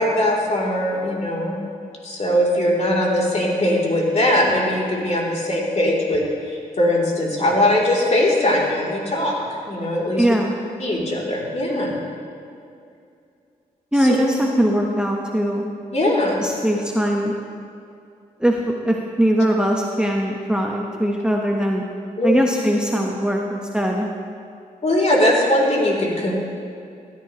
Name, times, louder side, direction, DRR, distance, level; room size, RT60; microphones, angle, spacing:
voice 1, 0.0-1.6 2.0-9.4 9.7-10.2 10.8-12.0 14.0-14.2 15.9-16.4 22.2-22.4 24.8-26.3, left 1 dB, 45° left, -3 dB, 3.1 m, -20 dB
voice 2, 10.2-10.5 13.9-15.6 16.4-17.3 18.4-21.8 22.2-24.1, equal, 5° right, 0 dB, 1.1 m, -21 dB
16.5 x 10.5 x 3.1 m, 2.5 s
cardioid pair, 55°, 16 cm